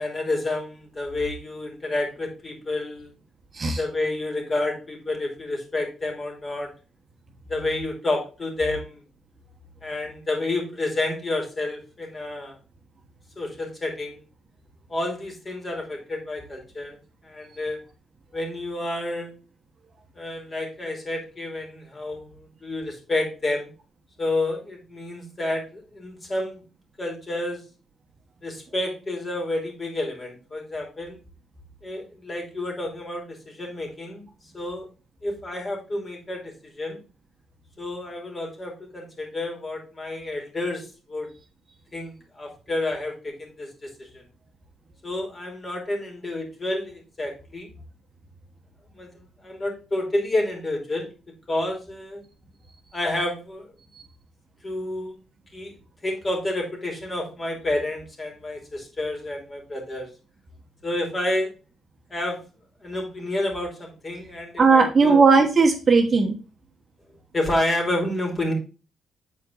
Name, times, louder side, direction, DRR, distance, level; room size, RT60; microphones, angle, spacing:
voice 1, 0.0-3.1 3.8-6.7 7.5-9.0 9.8-12.6 13.4-14.2 14.9-17.0 17.2-17.8 18.3-19.3 20.1-23.7 24.2-26.6 27.0-27.6 28.4-31.2 31.8-34.2 34.5-34.9 35.2-37.0 37.8-41.3 41.9-44.2 45.0-47.7 49.0-51.1 51.5-52.2 52.9-53.7 54.6-55.1 55.5-55.8 56.0-60.1 60.8-61.5 62.1-62.4 62.8-65.2 67.3-68.5, left 2 dB, 30° left, 1 dB, 2.8 m, -29 dB
voice 2, 64.6-66.4, right 4 dB, 40° right, 4 dB, 1.1 m, -17 dB
7.6 x 4.5 x 3.8 m, 0.33 s
cardioid pair, 90°, 0 cm